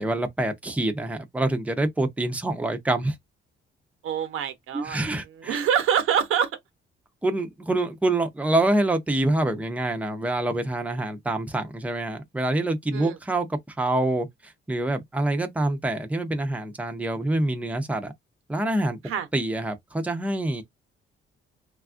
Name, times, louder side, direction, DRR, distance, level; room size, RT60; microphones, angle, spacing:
voice 1, 0.0-3.2 4.7-5.6 7.2-18.1 18.5-19.0 19.3-20.6, right 2 dB, 5° right, 0.5 m, -26 dB
voice 2, 4.0-5.0 5.4-6.5 12.9-13.2 19.0-19.3, right 8 dB, 85° right, 0.8 m, -25 dB
3.2 x 2.4 x 2.4 m
cardioid pair, 130°, 21 cm